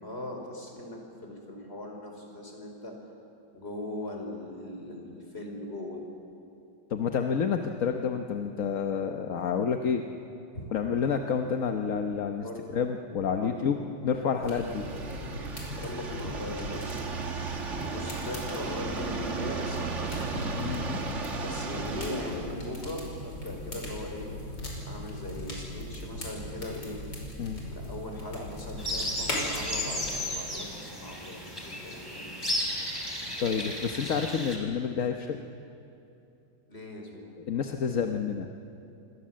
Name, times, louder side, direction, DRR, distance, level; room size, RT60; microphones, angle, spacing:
voice 1, 0.0-3.0 3.5-6.0 10.5-10.7 12.4-12.6 13.4-14.2 14.4-15.0 15.8-17.0 17.9-20.5 21.4-24.3 24.8-27.0 27.7-32.5 36.7-37.3, left 1 dB, 30° left, 2 dB, 5.0 m, -40 dB
voice 2, 6.9-10.0 10.7-12.4 12.7-13.8 14.0-14.8 20.3-21.0 27.4-27.6 33.4-35.4 37.5-38.6, left 6 dB, 50° left, 4 dB, 1.2 m, -29 dB
sound 1, 14.4-30.2, left 1 dB, 65° left, 6.1 m, -39 dB
sound 2, 14.5-22.5, right 4 dB, 40° right, 1.8 m, -35 dB
sound 3, 28.8-34.6, left 1 dB, 10° left, 4.6 m, -34 dB
27.5 x 24.5 x 7.6 m, 2.8 s
omnidirectional pair, 2.0 m